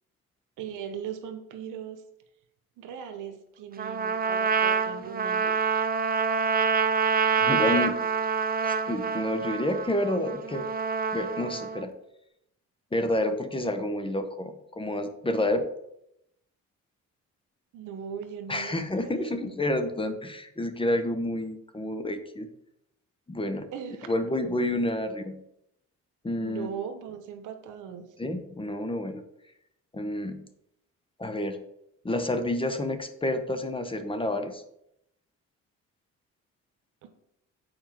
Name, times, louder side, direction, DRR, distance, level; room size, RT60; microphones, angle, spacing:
voice 1, 0.6-2.0 2.8-5.5 17.7-19.5 23.7-24.1 26.4-28.1 37.0-37.1, right 7 dB, 90° right, 7 dB, 1.0 m, -39 dB
Trumpet, 3.8-11.8, right 6 dB, 30° right, 0.5 m, -27 dB
voice 2, 7.3-8.0 8.6-10.7 11.1-11.9 12.9-15.7 18.5-22.5 23.3-23.7 24.1-25.4 26.2-26.7 28.2-29.2 29.9-30.4 31.2-31.6 32.0-34.6, left 1 dB, 15° left, 8 dB, 1.0 m, -29 dB
7.1 x 4.6 x 5.9 m, 0.79 s
cardioid pair, 90°, 30 cm